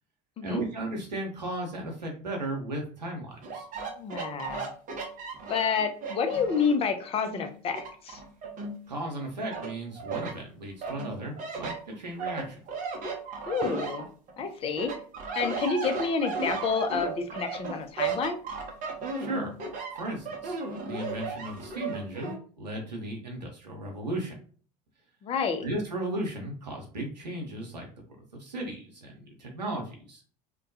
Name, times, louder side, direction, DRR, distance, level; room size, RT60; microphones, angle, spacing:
voice 1, 0.4-3.7 8.9-12.6 19.2-19.5 20.0-24.4 25.6-27.9 28.3-30.2, right 1 dB, 80° right, 1 dB, 0.7 m, -35 dB
sound 1, 3.4-6.9 7.3-9.1 9.5-10.4 10.8-14.4 14.8-22.4, right 4 dB, 40° right, 0.7 m, -35 dB
voice 2, 3.8-4.7 5.5-8.2 13.5-14.1 14.4-14.9 15.3-18.4 25.2-25.7, left 5 dB, 30° left, 8 dB, 0.5 m, -29 dB
2.2 x 2.2 x 2.6 m, 0.43 s
figure-of-eight pair, 65°, 21 cm